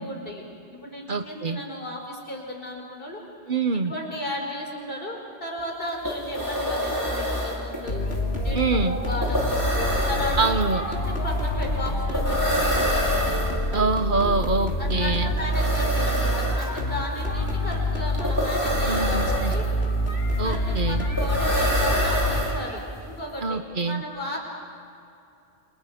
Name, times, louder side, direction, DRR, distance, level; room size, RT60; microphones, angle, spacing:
voice 1, 0.0-3.2 3.8-8.0 8.4-13.1 14.8-19.7 20.4-24.4, left 1 dB, 60° left, 0 dB, 5.3 m, -34 dB
voice 2, 1.1-1.6 3.5-3.9 8.5-9.0 10.4-10.8 13.7-15.3 18.9-19.5 20.4-21.0 23.4-24.0, right 4 dB, 55° right, 9 dB, 1.1 m, -25 dB
sound 1, 5.6-5.7 5.9-23.0, equal, 20° right, 5.3 m, -28 dB
sound 2, 7.9-22.8, left 1 dB, 85° left, 2.9 m, -26 dB
30.0 x 27.5 x 5.1 m, 2.6 s
omnidirectional pair, 1.1 m